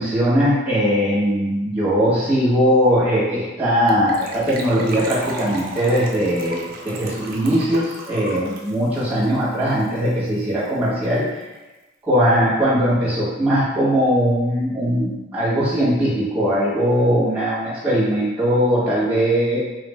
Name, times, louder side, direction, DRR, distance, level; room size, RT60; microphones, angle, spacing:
voice 1, 0.0-11.4 12.0-19.6, equal, 10° right, -9 dB, 1.1 m, -20 dB
Gurgling / Trickle dribble / Fill (with liquid), 3.9-10.1 10.4-10.5 10.6-10.9 11.2-11.3, right 2 dB, 50° right, 0.4 m, -35 dB
2.9 x 2.5 x 3.2 m, 1.1 s
head